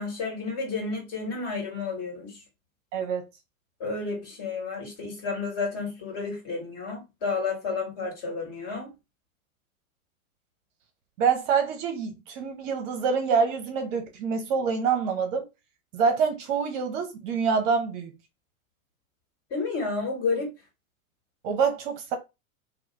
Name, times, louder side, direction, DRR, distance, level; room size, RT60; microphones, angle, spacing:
voice 1, 0.0-2.4 3.8-8.9 19.5-20.5, left 4 dB, 40° left, 1.3 m, -31 dB
voice 2, 2.9-3.2 11.2-15.5 15.9-18.1 21.4-22.1, right 6 dB, 35° right, 0.7 m, -26 dB
2.4 x 2.0 x 3.1 m
figure-of-eight pair, 105°, 43 cm